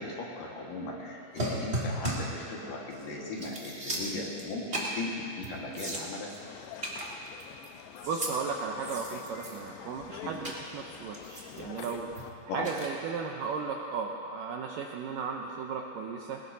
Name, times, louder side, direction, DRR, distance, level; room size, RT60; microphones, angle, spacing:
voice 1, 0.0-6.3 10.2-10.3 12.5-12.7, left 2 dB, 60° left, -3 dB, 3.0 m, -38 dB
sound 1, 1.4-2.4 2.9-3.0 3.3-4.4 4.7-5.0 5.4-5.5 5.7-6.4 6.8-7.7 8.0-8.3 8.8-9.7 10.4-10.6 11.1-12.2 12.6-12.9, right 1 dB, 40° right, 0.9 m, -35 dB
sound 2, 6.4-12.3, left 9 dB, 90° left, 2.8 m, -47 dB
voice 2, 8.1-12.1 12.5-16.4, right 5 dB, 80° right, 1 dB, 2.0 m, -35 dB
21.0 x 19.0 x 2.8 m, 2.6 s
omnidirectional pair, 4.8 m